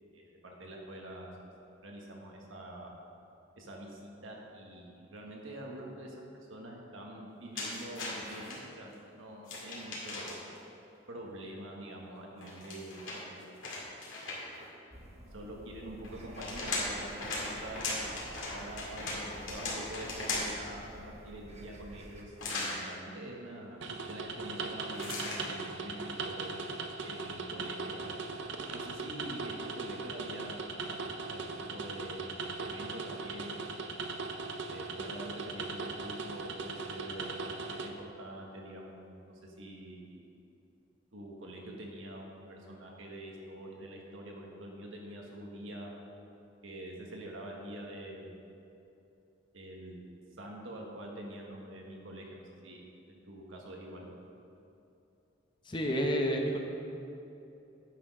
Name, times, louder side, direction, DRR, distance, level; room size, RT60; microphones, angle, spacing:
voice 1, 0.1-1.3 1.8-2.9 3.6-10.4 11.1-13.4 15.3-23.8 24.1-26.7 27.0-28.1 28.7-31.0 31.3-33.7 34.7-40.2 41.1-45.9 46.6-48.4 49.5-50.0 50.4-52.8 53.1-54.1, right 1 dB, 90° right, -1 dB, 1.5 m, -45 dB
sound 1, 7.5-8.6 9.4-10.6 12.4-14.7 16.0-20.7 22.4-22.8 24.9-25.4, left 2 dB, 90° left, 2.2 m, -38 dB
sound 2, 14.9-22.2, equal, 35° right, 1.0 m, -51 dB
sound 3, 23.8-37.9, right 3 dB, 65° right, 0.7 m, -39 dB
voice 2, 55.6-56.6, equal, 25° left, 2 dB, 0.8 m, -29 dB
9.4 x 6.2 x 5.3 m, 2.8 s
head